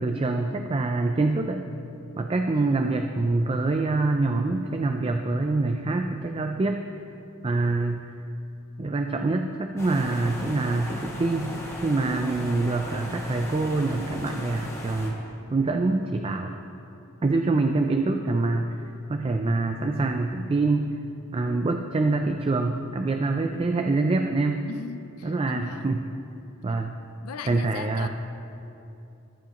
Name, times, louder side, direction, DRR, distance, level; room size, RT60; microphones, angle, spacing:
voice 1, 0.0-1.6 2.2-6.8 7.4-8.1 8.8-11.5 11.8-15.2 15.5-16.5 17.2-20.9 21.3-24.7 25.2-26.0 26.6-27.0 27.5-28.1, right 3 dB, 25° right, 5 dB, 0.3 m, -25 dB
sound 1, 9.8-15.1, left 1 dB, 15° left, 1.3 m, -37 dB
voice 2, 24.7-25.9 27.2-28.1, left 5 dB, 75° left, 9 dB, 0.5 m, -38 dB
14.5 x 11.0 x 3.0 m, 2.8 s
head